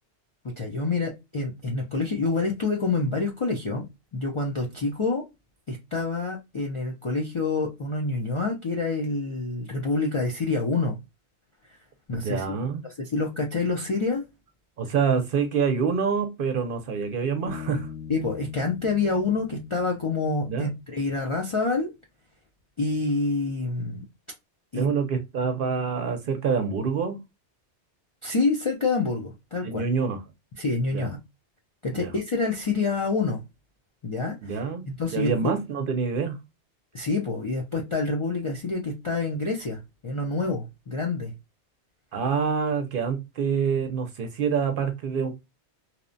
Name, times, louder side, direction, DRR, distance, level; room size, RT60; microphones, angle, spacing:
voice 1, 0.6-3.8 4.1-5.2 5.7-11.0 12.1-14.2 18.1-21.9 22.8-24.0 24.7-24.9 28.2-29.8 30.5-31.2 31.8-33.4 34.0-34.6 34.8-35.6 36.9-41.3, left 3 dB, 50° left, 0.3 m, -27 dB
voice 2, 12.2-12.8 14.8-17.9 20.5-20.7 24.7-27.2 29.6-30.2 30.9-31.1 31.9-32.1 34.4-34.9 35.1-36.4 42.1-45.4, right 6 dB, 60° right, 0.6 m, -26 dB
Bass guitar, 17.5-21.0, left 8 dB, 85° left, 1.1 m, -42 dB
2.9 x 2.0 x 2.4 m
omnidirectional pair, 1.2 m